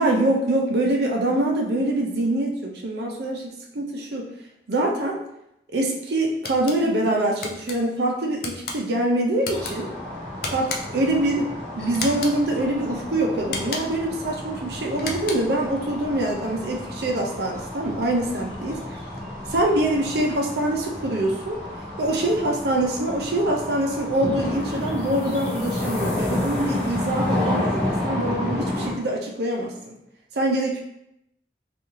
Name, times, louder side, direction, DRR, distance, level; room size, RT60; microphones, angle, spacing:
voice 1, 0.0-4.3 4.7-5.2 5.7-9.9 10.5-19.0 19.5-21.6 22.0-29.9 30.3-30.8, right 1 dB, 65° right, 0 dB, 0.5 m, -24 dB
sound 1, 6.4-6.8 7.4-7.8 8.4-8.8 9.4-9.7 10.4-11.0 11.9-12.4 13.4-14.0 14.9-15.6, left 3 dB, 55° left, 0.4 m, -32 dB
sound 2, 9.5-28.9, left 1 dB, 5° left, 0.8 m, -31 dB
sound 3, 24.6-27.8, left 2 dB, 35° left, 0.9 m, -45 dB
3.6 x 2.4 x 3.1 m, 0.82 s
head